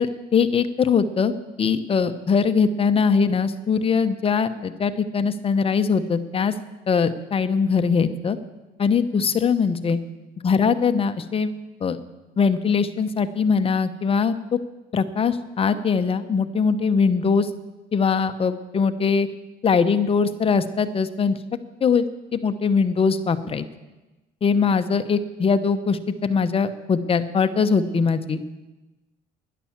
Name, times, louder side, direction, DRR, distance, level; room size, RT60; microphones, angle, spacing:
voice 1, 0.0-1.3 1.6-6.5 6.9-8.4 8.8-10.0 10.4-11.5 11.8-12.0 12.4-14.3 14.9-17.5 17.9-19.3 19.6-21.4 21.8-22.1 22.3-23.7 24.4-28.4, left 5 dB, 35° left, 9 dB, 0.9 m, -21 dB
11.0 x 10.5 x 7.3 m, 1.1 s
cardioid pair, 110°, 17 cm